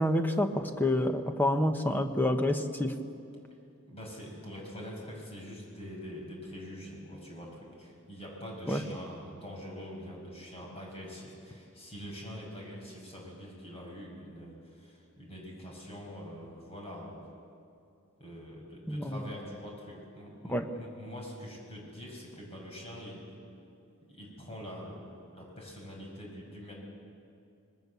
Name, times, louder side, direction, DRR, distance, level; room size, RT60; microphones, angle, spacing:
voice 1, 0.0-2.9 8.7-8.8 18.9-19.2 20.5-20.7, left 1 dB, 10° left, 6 dB, 1.1 m, -28 dB
voice 2, 3.9-17.2 18.2-23.3 24.1-26.7, equal, 30° left, -1 dB, 5.8 m, -44 dB
26.0 x 20.0 x 7.0 m, 2.5 s
head